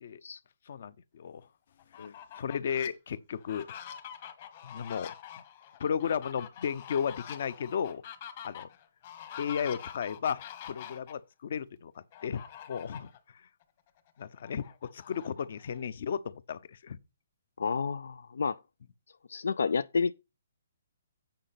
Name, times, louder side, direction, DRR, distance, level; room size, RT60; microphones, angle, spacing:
voice 1, 0.7-1.5 2.0-3.7 4.6-5.1 5.8-8.0 8.4-8.7 9.4-12.4 12.7-13.1 14.2-17.0, left 7 dB, 55° left, 0.7 m, -34 dB
Fowl, 1.8-2.9 3.4-11.1 12.1-13.2 13.6-13.7 14.1-15.8, left 9 dB, 35° left, 1.4 m, -46 dB
voice 2, 17.6-18.6 19.3-20.1, left 5 dB, 85° left, 0.4 m, -30 dB
8.8 x 5.1 x 5.8 m
hypercardioid pair, 165°, 0 cm